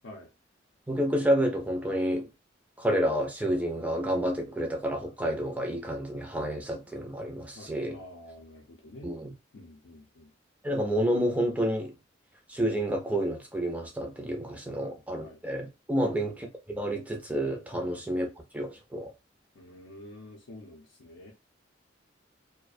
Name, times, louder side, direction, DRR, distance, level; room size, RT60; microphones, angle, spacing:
voice 1, 0.9-2.3 2.8-8.0 9.0-9.3 10.6-11.9 12.5-18.3 18.5-19.1, equal, 10° right, 0.4 m, -29 dB
voice 2, 7.6-9.1 9.5-10.3 14.8-15.4 16.0-16.2 17.8-18.0 19.6-21.3, left 1 dB, 70° left, 0.5 m, -48 dB
2.3 x 2.1 x 2.5 m
head